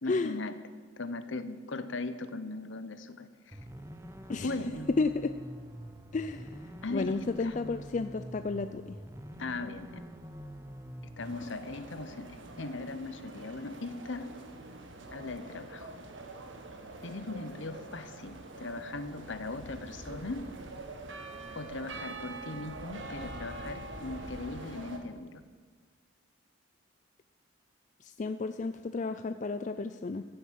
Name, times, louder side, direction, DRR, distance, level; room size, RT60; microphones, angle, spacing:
voice 1, 0.0-0.5 1.0-3.6 4.4-4.9 6.8-7.5 9.4-10.0 11.2-14.3 15.1-16.0 17.0-20.5 21.5-25.4, left 2 dB, 65° left, 12 dB, 0.9 m, -39 dB
sound 1, 3.5-11.5, equal, 15° right, 0.7 m, -46 dB
voice 2, 4.9-5.3 6.1-9.0 28.0-30.2, left 3 dB, 35° left, 10 dB, 0.4 m, -32 dB
sound 2, 11.2-25.0, right 2 dB, 65° right, 1.5 m, -45 dB
15.5 x 8.0 x 7.4 m, 1.5 s
head